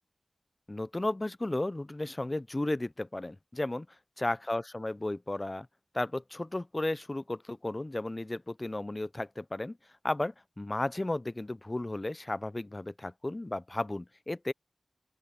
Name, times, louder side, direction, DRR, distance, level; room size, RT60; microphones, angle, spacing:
voice 1, 0.7-3.9 4.2-5.7 5.9-9.8 10.0-14.5, left 2 dB, 30° left, 0.5 m, -34 dB
open air
wide cardioid pair, 60°, 0 cm